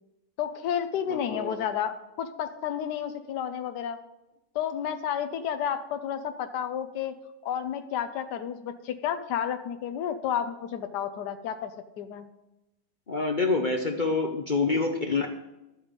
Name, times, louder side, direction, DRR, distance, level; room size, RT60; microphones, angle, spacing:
voice 1, 0.4-4.0 4.5-7.2 7.4-11.7 12.0-12.3, left 9 dB, 75° left, 8 dB, 1.3 m, -31 dB
voice 2, 1.1-1.6 13.1-15.3, left 3 dB, 40° left, 4 dB, 0.7 m, -27 dB
12.0 x 7.1 x 5.1 m, 0.96 s
omnidirectional pair, 1.8 m